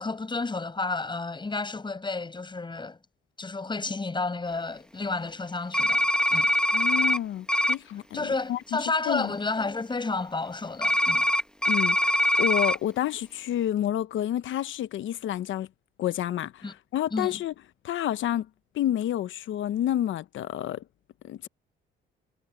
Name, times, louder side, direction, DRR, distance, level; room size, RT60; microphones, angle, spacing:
voice 1, 0.0-3.0 3.4-6.0 6.3-6.5 8.1-11.2 16.6-16.7 17.1-17.3, left 3 dB, 25° left, 6.9 m, -31 dB
sound 1, 5.7-7.2 7.5-7.7 10.8-12.8, left 1 dB, 5° left, 2.0 m, -23 dB
voice 2, 6.7-8.6 9.1-9.3 11.7-15.7 16.0-16.6 16.9-17.5 17.8-18.5 18.7-20.8 21.2-21.5, left 12 dB, 75° left, 1.0 m, -29 dB
cardioid pair, 90°, 20 cm